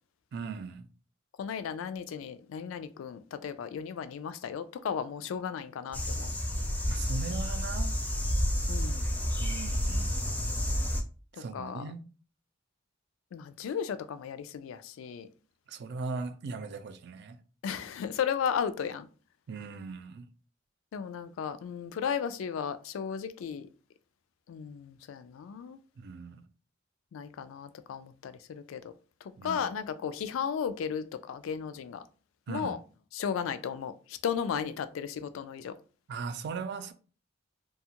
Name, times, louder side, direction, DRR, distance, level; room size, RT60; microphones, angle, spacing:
voice 1, 0.3-0.9 6.9-8.0 9.4-10.2 11.3-12.0 15.7-17.4 19.5-20.3 26.0-26.4 29.4-29.7 32.5-32.8 36.1-36.9, right 4 dB, 60° right, 0.3 m, -39 dB
voice 2, 1.4-6.3 8.7-9.1 11.5-11.8 13.3-15.3 17.6-19.1 20.9-23.7 24.5-25.8 27.1-28.9 29.4-32.0 32.5-32.8 33.1-35.7, left 7 dB, 85° left, 0.3 m, -35 dB
sound 1, 5.9-11.0, equal, 10° left, 0.4 m, -30 dB
2.7 x 2.3 x 2.8 m
head